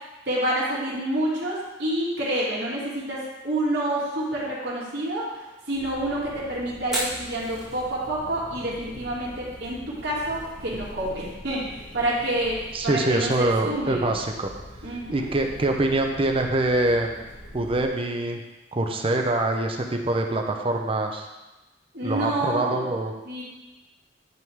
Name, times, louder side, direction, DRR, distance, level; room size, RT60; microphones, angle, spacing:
voice 1, 0.3-5.4 5.7-12.6 12.8-14.1 14.8-15.3 21.9-22.9 23.3-23.4, right 1 dB, 65° right, -6 dB, 2.6 m, -28 dB
sound 1, 5.7-17.9, equal, 45° left, 1.3 m, -44 dB
Fire, 6.8-20.7, right 1 dB, 5° right, 1.7 m, -43 dB
voice 2, 12.7-14.5 15.1-17.1 17.5-18.4 18.7-21.3 22.0-23.1, right 2 dB, 30° right, 3 dB, 0.7 m, -24 dB
10.5 x 3.7 x 4.7 m, 1.1 s
head